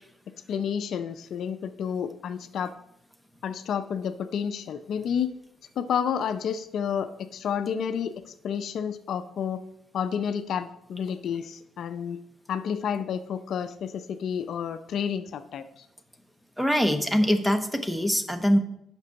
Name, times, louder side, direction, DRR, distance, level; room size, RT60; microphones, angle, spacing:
voice 1, 0.5-2.7 3.4-5.3 5.8-8.1 8.4-9.6 9.9-12.2 12.5-15.8, left 7 dB, 70° left, 10 dB, 0.5 m, -30 dB
voice 2, 16.6-18.6, equal, 5° right, 9 dB, 1.0 m, -23 dB
8.1 x 6.0 x 5.7 m, 0.75 s
cardioid pair, 90°, 0 cm